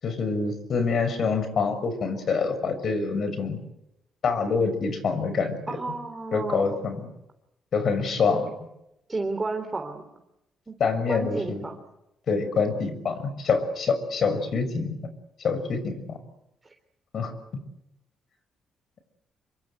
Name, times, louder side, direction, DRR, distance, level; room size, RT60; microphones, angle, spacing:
voice 1, 0.0-3.6 4.2-5.8 6.3-7.1 7.7-8.5 10.8-11.6 12.3-15.0 15.4-16.2 17.1-17.3, left 5 dB, 55° left, 11 dB, 6.3 m, -26 dB
voice 2, 5.7-6.8 8.0-8.5 9.1-10.0 10.7-10.8 11.1-11.8 12.3-12.5 15.5-15.6 16.6-16.7, right 3 dB, 25° right, 5 dB, 3.5 m, -32 dB
27.0 x 23.5 x 8.2 m, 0.87 s
cardioid pair, 90°, 0 cm